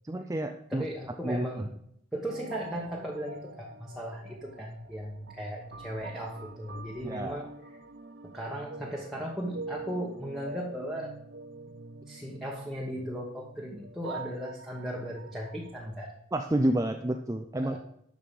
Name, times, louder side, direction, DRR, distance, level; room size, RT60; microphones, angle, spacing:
voice 1, 0.0-0.8 1.2-1.7 7.0-7.5 16.3-17.8, right 1 dB, 15° right, 5 dB, 0.4 m, -30 dB
voice 2, 0.7-1.7 2.1-7.5 8.2-11.1 12.1-16.1 17.6-17.8, equal, ahead, -4 dB, 1.2 m, -37 dB
sound 1, 2.3-15.9, right 3 dB, 65° right, 0.8 m, -45 dB
11.5 x 6.3 x 5.2 m, 0.73 s
head